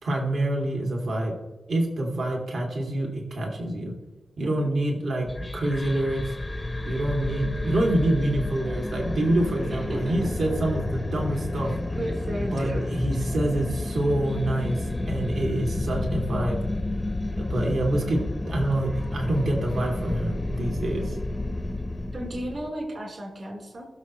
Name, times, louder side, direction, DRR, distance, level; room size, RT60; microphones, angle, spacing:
voice 1, 0.0-1.3 1.7-3.9 4.4-6.3 6.8-11.7 12.5-16.6 17.4-21.2, right 1 dB, 65° right, 0 dB, 2.5 m, -26 dB
sound 1, 5.2-22.7, left 2 dB, 15° left, 0.7 m, -30 dB
voice 2, 9.6-10.3 11.9-12.9 22.1-23.9, right 1 dB, 50° right, 0 dB, 3.7 m, -34 dB
20.5 x 7.1 x 3.1 m, 1.2 s
wide cardioid pair, 165°, 0 cm